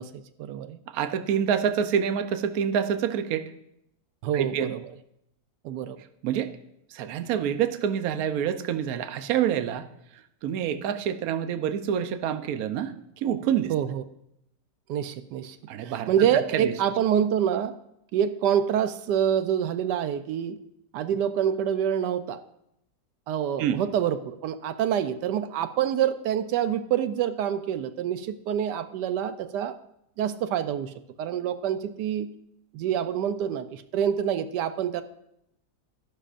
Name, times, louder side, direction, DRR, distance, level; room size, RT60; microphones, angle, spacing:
voice 1, 0.0-0.8 4.2-4.8 5.6-6.0 13.7-14.0 14.9-15.6 15.8-17.7 18.1-20.6 20.9-22.4 23.3-29.8 30.2-32.3 32.7-35.0, right 9 dB, 85° right, 11 dB, 1.2 m, -26 dB
voice 2, 0.9-3.4 4.3-4.7 6.2-6.6 6.9-9.9 10.4-13.7 15.7-16.1 16.5-16.7 23.6-23.8, right 8 dB, 65° right, 8 dB, 1.1 m, -27 dB
12.5 x 11.5 x 2.5 m, 0.78 s
omnidirectional pair, 1.8 m